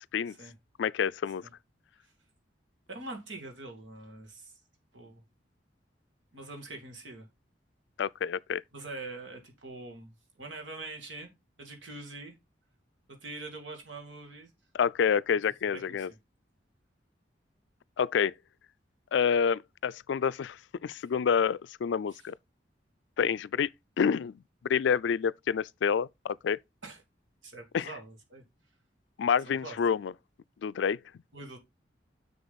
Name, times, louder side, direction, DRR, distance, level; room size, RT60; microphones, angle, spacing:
voice 1, 0.8-1.4 8.0-8.6 14.7-16.1 18.0-18.3 19.1-22.3 23.2-23.7 24.0-24.4 24.7-26.6 27.7-27.9 29.2-30.1 30.6-31.0, left 7 dB, 75° left, 0.3 m, -28 dB
voice 2, 2.9-4.5 4.9-5.2 6.3-7.3 8.7-11.3 11.6-12.4 13.1-14.5 15.7-16.1 22.1-22.2 26.8-27.0 27.4-28.4 29.5-29.8 31.3-31.6, right 2 dB, 85° right, 2.3 m, -44 dB
6.8 x 6.7 x 4.0 m
head